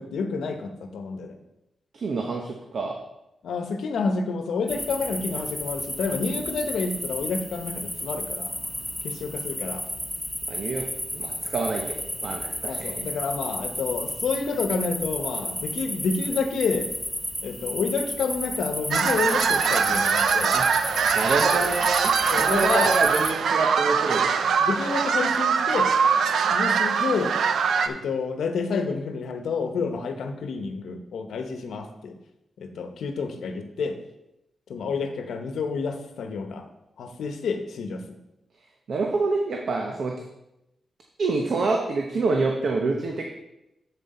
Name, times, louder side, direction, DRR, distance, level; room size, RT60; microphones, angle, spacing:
voice 1, 0.0-1.4 3.4-8.5 9.0-9.8 12.6-16.9 17.4-20.6 22.3-23.0 24.6-25.9 26.5-27.4 27.9-32.2 32.6-34.0 34.7-36.7 37.0-38.0, left 4 dB, 85° left, 6 dB, 0.9 m, -29 dB
voice 2, 1.9-3.0 10.5-10.9 11.1-13.1 20.5-20.7 21.1-24.4 38.9-40.1 41.2-43.3, right 3 dB, 50° right, 1 dB, 0.9 m, -27 dB
sound 1, 4.7-23.3, left 1 dB, 5° left, 0.5 m, -33 dB
sound 2, 18.9-27.9, right 6 dB, 75° right, 0.5 m, -22 dB
7.6 x 7.5 x 4.3 m, 0.90 s
wide cardioid pair, 170°, 0 cm